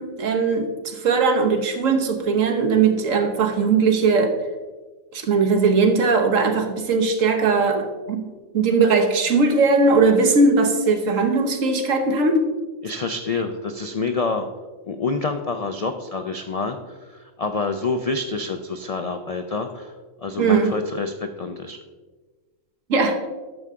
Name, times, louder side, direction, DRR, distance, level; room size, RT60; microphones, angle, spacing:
voice 1, 0.0-4.4 5.1-12.4 20.4-20.8 22.9-23.2, right 4 dB, 75° right, 5 dB, 1.4 m, -19 dB
voice 2, 12.8-14.5 14.9-19.9 20.2-21.8, left 3 dB, 75° left, 6 dB, 0.3 m, -27 dB
11.0 x 6.8 x 3.6 m, 1.3 s
omnidirectional pair, 1.4 m